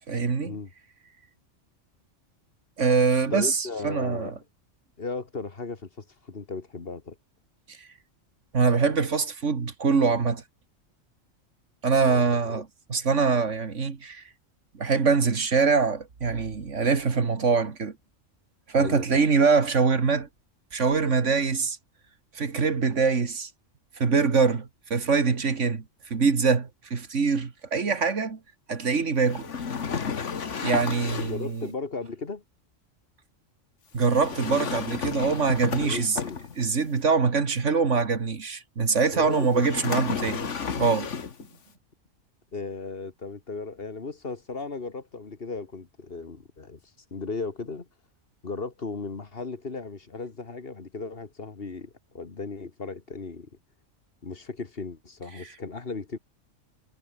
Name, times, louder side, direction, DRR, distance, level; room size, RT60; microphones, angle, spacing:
voice 1, 0.1-0.6 2.8-4.3 7.7-7.9 8.5-10.4 11.8-12.6 12.9-14.2 14.8-17.9 18.7-20.3 20.7-21.8 22.4-23.5 24.0-25.8 26.1-28.4 28.7-29.5 30.6-31.7 33.9-36.2 36.6-40.5 40.8-41.2, right 5 dB, 70° right, 2.2 m, -24 dB
voice 2, 3.3-4.4 5.0-7.2 12.0-12.6 18.8-19.2 31.2-32.4 35.8-36.4 39.1-39.6 42.5-46.8 47.1-47.9 48.4-53.5 54.2-56.2, left 4 dB, 50° left, 2.0 m, -36 dB
sound 1, 29.2-31.5 34.0-36.8 39.5-41.5, left 6 dB, 70° left, 1.8 m, -32 dB
omnidirectional pair, 1.3 m